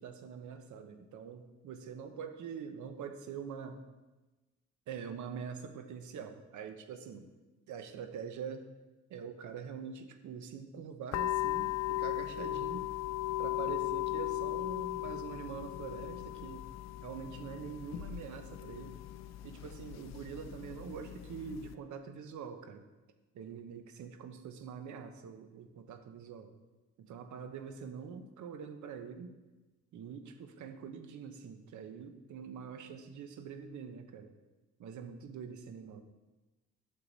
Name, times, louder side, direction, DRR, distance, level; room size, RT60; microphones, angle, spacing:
voice 1, 0.0-3.8 4.9-7.3 7.7-8.7 9.1-12.9 13.4-16.7 17.0-19.0 19.4-22.8 23.3-26.5 27.0-29.3 29.9-34.3 34.8-36.0, right 6 dB, 75° right, 8 dB, 1.0 m, -44 dB
sound 1, 11.1-21.7, left 15 dB, 60° left, 0.5 m, -37 dB
8.7 x 6.7 x 4.1 m, 1.1 s
cardioid pair, 90°, 30 cm